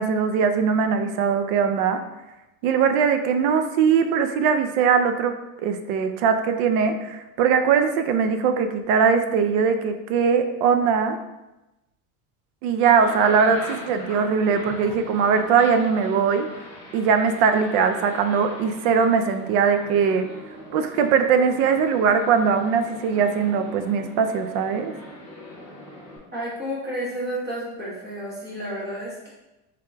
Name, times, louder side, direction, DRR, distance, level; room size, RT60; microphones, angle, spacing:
voice 1, 0.0-2.0 2.6-11.2 12.6-16.5 16.9-20.3 20.7-24.9, right 6 dB, 85° right, 8 dB, 0.6 m, -21 dB
sound 1, 12.8-26.2, left 1 dB, 15° left, 1.2 m, -40 dB
voice 2, 26.3-29.3, equal, 25° right, -6 dB, 1.3 m, -31 dB
3.7 x 3.7 x 2.7 m, 0.99 s
cardioid pair, 160°, 41 cm